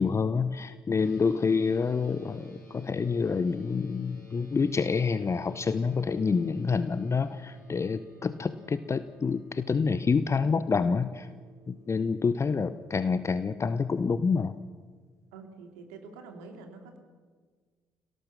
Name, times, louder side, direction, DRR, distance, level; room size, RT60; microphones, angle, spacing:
voice 1, 0.0-11.3 11.7-14.6, left 5 dB, 30° left, 14 dB, 0.8 m, -27 dB
sound 1, 0.9-12.8, right 1 dB, 90° left, 5.0 m, -55 dB
voice 2, 15.3-17.0, right 4 dB, 70° right, 5 dB, 2.8 m, -46 dB
26.0 x 18.0 x 6.6 m, 1.5 s
figure-of-eight pair, 45°, 10 cm